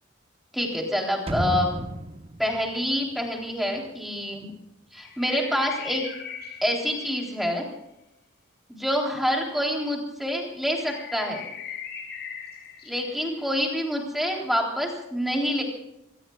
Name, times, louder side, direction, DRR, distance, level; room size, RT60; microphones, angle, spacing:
voice 1, 0.5-1.7 2.4-4.5 4.9-6.1 6.6-7.7 8.8-11.5 12.8-15.6, equal, ahead, 0 dB, 3.6 m, -27 dB
sound 1, 1.3-4.1 4.4-4.5, right 1 dB, 30° right, 1.1 m, -33 dB
sound 2, 5.0-7.5 10.7-13.6, left 7 dB, 55° left, 6.7 m, -40 dB
26.5 x 19.0 x 2.4 m, 0.86 s
head